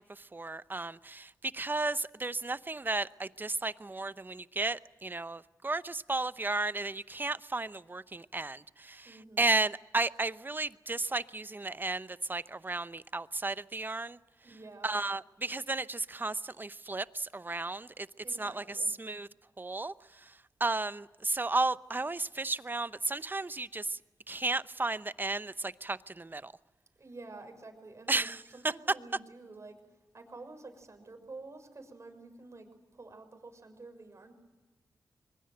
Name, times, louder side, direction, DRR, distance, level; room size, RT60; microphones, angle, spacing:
voice 1, 0.0-14.2 14.8-18.1 18.4-18.6 19.0-19.3 19.6-24.0 24.3-26.5 28.1-28.7, right 2 dB, 30° right, 0.8 m, -34 dB
voice 2, 9.0-9.5 14.4-15.0 18.2-18.9 27.0-34.3, right 3 dB, 45° right, 6.4 m, -49 dB
23.5 x 22.0 x 7.9 m
cardioid pair, 50°, 7 cm